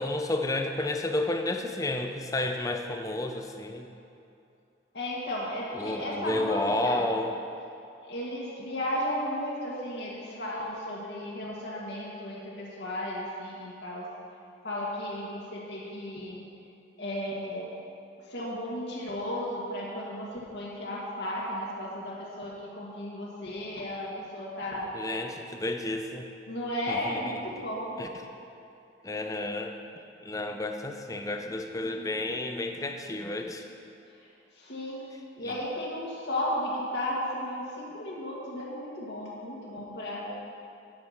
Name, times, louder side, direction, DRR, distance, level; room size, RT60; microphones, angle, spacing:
voice 1, 0.0-3.9 5.7-7.3 24.9-26.3 26.9-27.5 28.0-28.1 29.0-29.7 30.2-33.7 35.4-35.5, left 2 dB, 15° left, 5 dB, 0.5 m, -31 dB
voice 2, 4.9-7.1 8.0-14.0 14.6-16.4 17.0-17.7 18.3-24.9 26.5-28.0 34.5-35.0 35.4-40.2, left 1 dB, 60° left, -6 dB, 1.6 m, -34 dB
8.8 x 7.8 x 5.7 m, 2.7 s
head